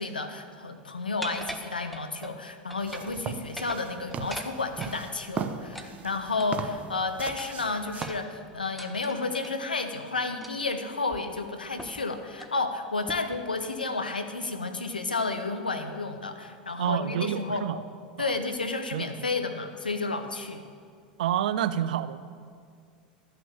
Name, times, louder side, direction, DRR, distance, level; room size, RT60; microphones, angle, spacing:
voice 1, 0.0-17.7 18.2-20.6, left 3 dB, 90° left, 7 dB, 0.8 m, -31 dB
sound 1, 1.2-2.4 2.7-3.2 3.5-5.0 5.7-6.8 7.4-9.6 10.4-10.7 11.1-11.2 11.8-12.0 12.3-12.6 13.1-13.4, equal, ahead, 0.9 m, -42 dB
sound 2, 2.8-8.2, right 7 dB, 30° right, 0.7 m, -38 dB
voice 2, 16.8-17.8 18.2-18.3 18.9-19.1 21.2-22.2, right 10 dB, 65° right, 14 dB, 0.5 m, -28 dB
12.5 x 5.9 x 7.0 m, 2.1 s
figure-of-eight pair, 85°, 5 cm